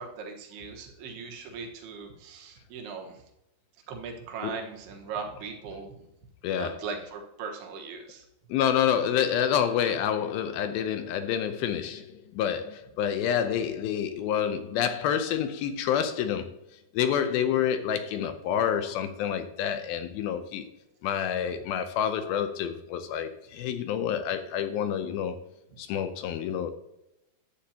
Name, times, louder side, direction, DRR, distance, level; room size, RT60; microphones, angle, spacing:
voice 1, 0.0-3.2 3.9-6.1 6.5-8.2, right 5 dB, 85° right, 2 dB, 3.3 m, -39 dB
voice 2, 6.4-6.8 8.5-16.5 16.9-20.7 21.0-25.4 25.8-26.7, left 9 dB, 80° left, 9 dB, 2.3 m, -28 dB
12.0 x 8.2 x 2.8 m, 0.85 s
omnidirectional pair, 4.6 m